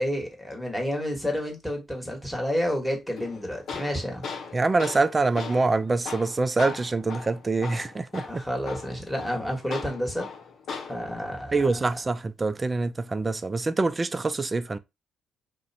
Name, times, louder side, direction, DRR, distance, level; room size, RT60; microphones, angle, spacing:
voice 1, 0.0-4.3 8.3-10.3 10.9-11.6, equal, ahead, 1.3 m, -30 dB
Tools, 3.2-11.2, left 5 dB, 65° left, 0.7 m, -39 dB
voice 2, 4.5-8.4 11.5-14.8, right 3 dB, 30° right, 0.3 m, -25 dB
2.5 x 2.1 x 2.7 m
hypercardioid pair, 50°, 0 cm